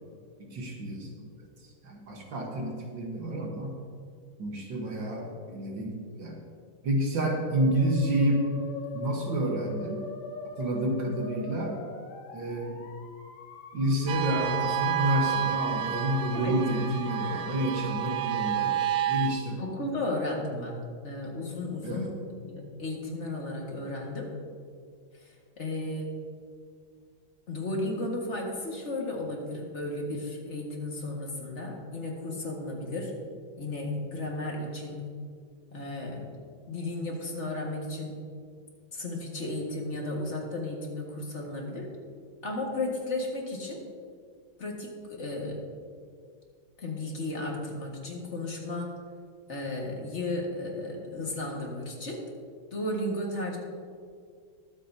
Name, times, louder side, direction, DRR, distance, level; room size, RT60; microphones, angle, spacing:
voice 1, 0.4-1.3 1.8-3.8 4.4-6.4 6.8-8.5 8.9-10.0 10.6-11.8 12.3-12.8 13.7-18.8 19.1-19.6 21.8-22.1, right 1 dB, 70° right, 0 dB, 2.0 m, -29 dB
Musical instrument, 7.5-19.3, left 3 dB, 75° left, 2.1 m, -43 dB
sound 1, 14.1-19.3, right 11 dB, 90° right, 1.5 m, -30 dB
voice 2, 19.6-24.3 25.2-25.3 25.6-26.1 27.5-33.1 33.6-35.1 35.7-36.2 36.7-38.2 38.9-41.9 42.4-43.8 44.6-45.6 46.8-48.9 49.5-52.3 52.7-53.6, left 2 dB, 35° left, -1 dB, 1.9 m, -34 dB
22.0 x 8.2 x 2.8 m, 2.1 s
omnidirectional pair, 2.2 m